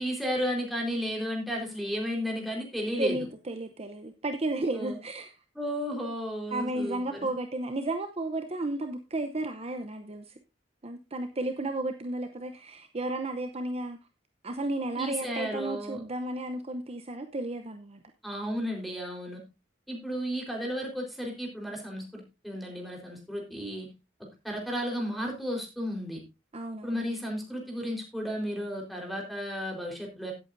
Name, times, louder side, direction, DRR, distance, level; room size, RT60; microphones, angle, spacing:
voice 1, 0.0-3.2 4.8-5.0 5.6-7.3 15.0-16.0 18.2-19.4 19.9-23.9 24.4-26.2 26.8-30.3, equal, ahead, -1 dB, 4.0 m, -33 dB
voice 2, 3.0-5.4 6.5-10.4 10.8-14.0 14.4-18.0 26.5-27.0, right 2 dB, 35° right, 6 dB, 0.8 m, -33 dB
16.5 x 8.2 x 2.6 m, 0.26 s
head